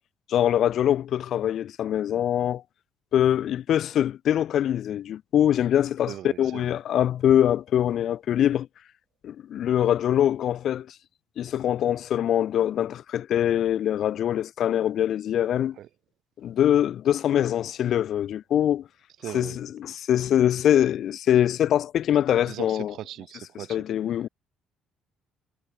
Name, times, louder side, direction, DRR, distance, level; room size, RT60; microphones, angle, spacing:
voice 1, 0.3-2.6 3.1-8.7 9.2-11.0 11.4-15.8 16.4-18.9 19.3-22.9 23.7-24.3, left 10 dB, 50° left, 0.6 m, -23 dB
voice 2, 6.1-6.7 15.8-15.9 19.2-19.6 22.4-23.8, right 12 dB, 55° right, 2.4 m, -39 dB
cardioid pair, 155°, 0 cm